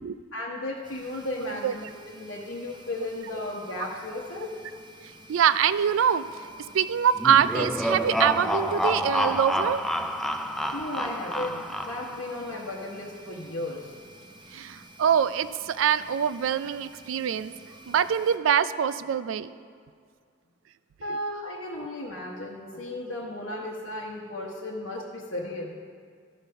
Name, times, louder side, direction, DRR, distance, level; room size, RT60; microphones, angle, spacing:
voice 1, 0.3-4.5 10.7-13.9 21.0-25.8, left 1 dB, 85° left, -5 dB, 1.0 m, -35 dB
sound 1, 0.8-18.4, right 1 dB, 25° right, 0.7 m, -50 dB
voice 2, 1.4-1.7 5.3-6.2 6.7-9.8 11.1-11.2 14.5-17.5 17.9-19.5, right 8 dB, 85° right, 15 dB, 0.4 m, -24 dB
sound 2, 7.2-12.3, equal, ahead, 0.3 m, -28 dB
12.5 x 5.3 x 5.6 m, 2.1 s
head